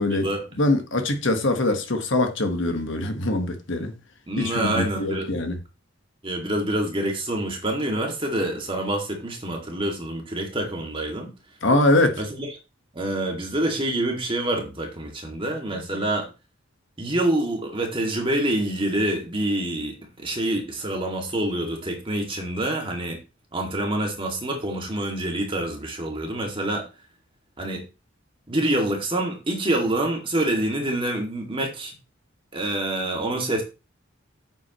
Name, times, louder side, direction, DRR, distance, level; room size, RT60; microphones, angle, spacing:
voice 1, 0.6-3.9 4.4-5.6 11.6-12.2, left 2 dB, 65° left, 1.4 m, -23 dB
voice 2, 4.3-5.3 6.2-11.3 12.2-12.5 12.9-16.3 17.0-23.2 23.5-26.8 27.6-27.8 28.5-32.0 32.5-33.6, right 1 dB, 25° right, 2.2 m, -26 dB
9.1 x 7.4 x 3.1 m
head